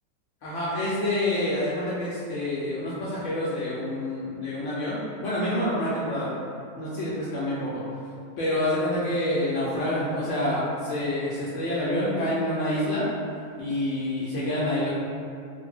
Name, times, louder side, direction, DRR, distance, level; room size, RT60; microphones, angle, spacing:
voice 1, 0.4-6.3 6.8-8.1 8.4-13.1 13.6-14.9, left 1 dB, 70° left, -8 dB, 0.7 m, -27 dB
2.6 x 2.0 x 3.4 m, 2.5 s
omnidirectional pair, 1.6 m